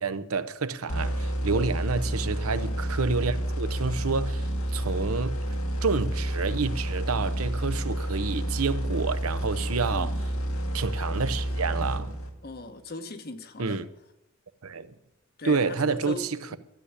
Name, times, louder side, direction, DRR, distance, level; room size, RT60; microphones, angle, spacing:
voice 1, 0.0-5.4 5.8-10.2 10.7-12.2 13.6-13.8 14.6-14.9 15.4-16.4, right 4 dB, 85° right, 0.8 m, -29 dB
sound 1, 0.9-12.5, right 1 dB, 90° left, 2.0 m, -29 dB
voice 2, 9.9-10.2 12.4-13.8 15.4-16.6, left 2 dB, 45° left, 1.1 m, -39 dB
13.0 x 8.4 x 9.8 m
head